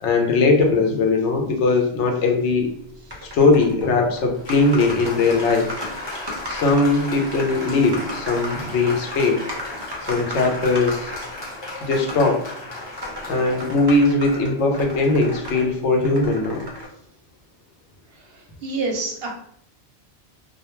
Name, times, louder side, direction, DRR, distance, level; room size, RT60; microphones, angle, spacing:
voice 1, 0.0-2.7 3.3-5.7 6.5-9.4 10.1-11.1 11.8-12.4 13.3-16.6, left 3 dB, 85° left, 2 dB, 0.9 m, -19 dB
sound 1, 3.1-3.9 4.1-4.2 4.5-11.4 11.9-12.2 12.8-15.6 16.0-16.9, left 1 dB, 35° right, 0.4 m, -35 dB
Applause, 3.8-15.7, left 2 dB, 30° left, 0.6 m, -35 dB
voice 2, 18.2-19.3, right 3 dB, 65° right, 1 dB, 0.7 m, -28 dB
2.2 x 2.1 x 2.9 m, 0.66 s
omnidirectional pair, 1.2 m